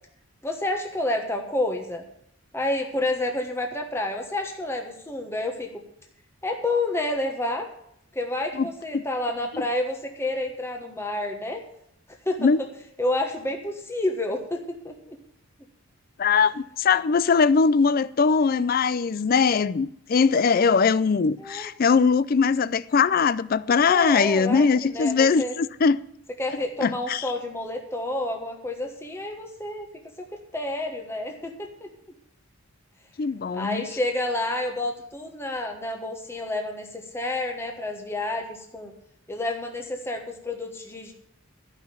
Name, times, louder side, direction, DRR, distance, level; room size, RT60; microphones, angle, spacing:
voice 1, 0.4-2.1 2.5-5.8 6.4-7.7 8.1-11.6 12.2-12.5 13.0-15.2 21.4-21.7 23.8-25.5 26.4-29.9 30.3-31.9 33.5-38.9 39.3-41.1, left 2 dB, 10° left, 1.2 m, -29 dB
voice 2, 16.2-26.0 26.8-27.3 33.2-33.9, left 5 dB, 40° left, 0.4 m, -21 dB
13.0 x 5.8 x 8.6 m
head